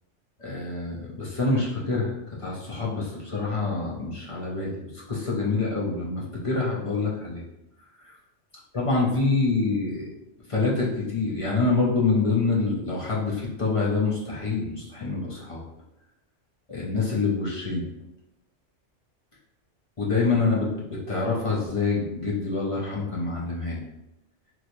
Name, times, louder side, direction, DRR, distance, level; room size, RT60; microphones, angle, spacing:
voice 1, 0.4-2.1 2.4-7.4 8.0-8.1 8.7-10.1 10.5-15.6 16.7-17.9 20.0-23.8, left 3 dB, 40° left, -5 dB, 0.4 m, -26 dB
3.0 x 3.0 x 2.6 m, 0.92 s
omnidirectional pair, 1.2 m